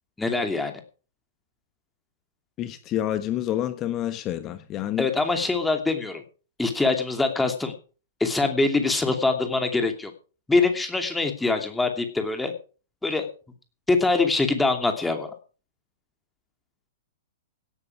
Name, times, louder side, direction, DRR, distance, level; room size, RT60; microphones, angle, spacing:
voice 1, 0.2-0.8 5.0-6.2 6.6-7.7 8.2-10.1 10.5-12.5 13.0-13.3 13.9-15.3, left 3 dB, 5° left, 5 dB, 2.8 m, -24 dB
voice 2, 2.6-5.1, left 12 dB, 30° left, 12 dB, 1.2 m, -28 dB
17.5 x 9.7 x 5.0 m, 0.38 s
figure-of-eight pair, 105°, 0 cm